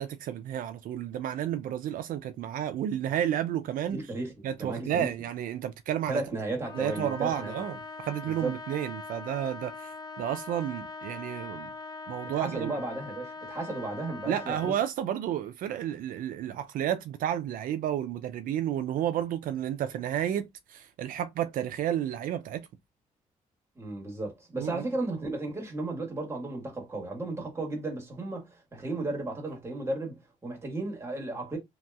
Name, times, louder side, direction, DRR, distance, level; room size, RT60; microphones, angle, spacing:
voice 1, 0.0-4.0 4.4-6.2 6.7-11.7 12.1-12.7 14.3-22.7 24.6-24.8, right 10 dB, 80° right, 0.4 m, -31 dB
voice 2, 3.9-5.1 6.1-7.5 8.3-8.5 12.3-14.7 23.7-31.6, right 2 dB, 20° right, 1.5 m, -34 dB
Trumpet, 6.6-14.8, left 3 dB, 30° left, 0.5 m, -42 dB
2.9 x 2.9 x 2.3 m
cardioid pair, 120°, 14 cm